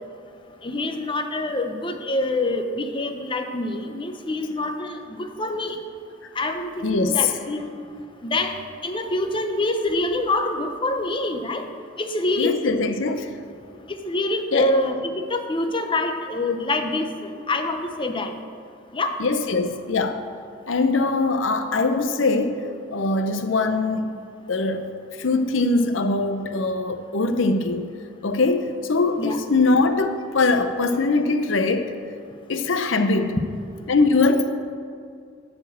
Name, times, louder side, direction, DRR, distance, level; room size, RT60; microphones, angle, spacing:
voice 1, 0.6-5.8 6.4-7.7 8.2-8.5 8.8-11.7 12.0-12.9 13.9-18.3 18.9-19.2 29.2-29.4 34.2-34.4, left 2 dB, 25° left, 6 dB, 0.7 m, -26 dB
voice 2, 6.8-7.2 12.4-13.3 14.5-14.7 19.2-20.2 20.7-22.6 22.9-24.1 24.5-24.9 25.2-27.9 28.2-31.9 32.5-33.4 33.9-34.5, left 3 dB, 90° left, 8 dB, 0.6 m, -22 dB
11.0 x 4.4 x 7.3 m, 2.3 s
head